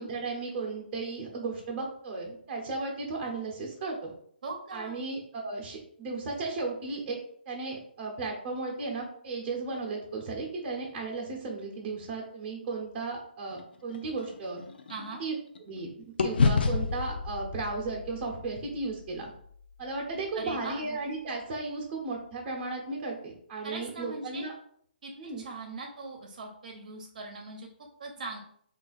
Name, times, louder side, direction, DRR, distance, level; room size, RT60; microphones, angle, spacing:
voice 1, 0.0-4.1 4.7-7.2 7.5-14.6 15.2-15.3 15.6-19.3 19.8-24.5 25.2-25.4, right 3 dB, 15° right, -2 dB, 0.8 m, -35 dB
voice 2, 4.4-5.0 14.9-15.2 20.3-20.8 23.6-24.5 25.0-27.7 28.0-28.4, right 3 dB, 50° right, 1 dB, 0.7 m, -40 dB
sound 1, 13.5-15.8 16.2-20.4, left 4 dB, 65° left, 0.5 m, -31 dB
3.5 x 2.5 x 4.0 m, 0.64 s
hypercardioid pair, 165°, 6 cm